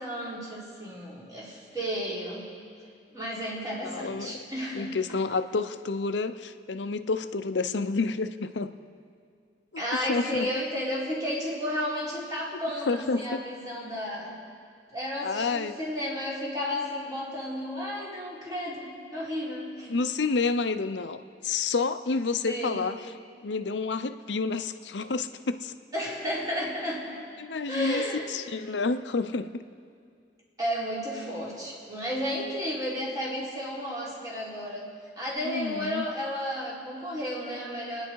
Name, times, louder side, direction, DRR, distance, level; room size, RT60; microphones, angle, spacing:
voice 1, 0.0-2.4 3.1-4.9 9.8-14.3 14.9-19.9 22.5-22.8 25.9-27.0 27.7-28.3 30.6-34.9 35.2-38.1, equal, 20° right, -6 dB, 4.3 m, -32 dB
voice 2, 3.8-4.4 4.7-8.7 9.7-10.5 12.9-13.4 15.2-15.8 19.9-23.0 23.4-25.7 27.4-29.6 35.4-36.1, left 4 dB, 80° left, 10 dB, 0.7 m, -29 dB
28.5 x 10.5 x 4.7 m, 2.2 s
head